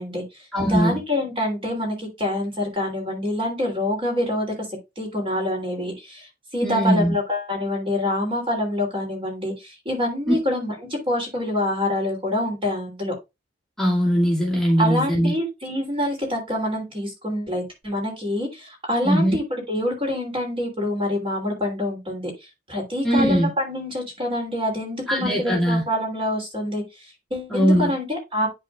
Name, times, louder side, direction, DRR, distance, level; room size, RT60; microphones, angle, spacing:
voice 1, 0.0-4.5 5.0-13.1 14.8-22.3 22.7-28.5, left 1 dB, 30° right, 2.9 m, -26 dB
voice 2, 0.5-1.0 6.6-7.1 10.3-10.4 13.8-15.3 19.0-19.4 23.0-23.5 25.1-25.8 27.5-27.9, equal, 5° left, 2.1 m, -20 dB
12.0 x 4.2 x 2.4 m
head